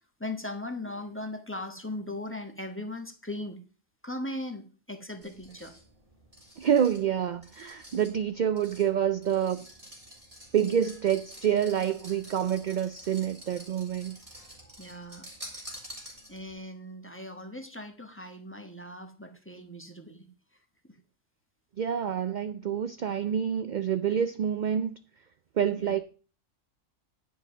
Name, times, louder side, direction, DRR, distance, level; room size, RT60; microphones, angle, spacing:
voice 1, 0.2-3.6 4.0-5.7 14.8-15.3 16.3-20.3 20.9-21.0 25.8-25.9, left 1 dB, 10° left, 1.1 m, -38 dB
sound 1, 5.2-16.6, equal, 25° right, 3.4 m, -49 dB
voice 2, 6.6-9.7 10.5-14.2 21.8-25.0 25.6-26.0, right 9 dB, 60° right, 0.5 m, -27 dB
10.0 x 5.5 x 6.5 m
omnidirectional pair, 1.3 m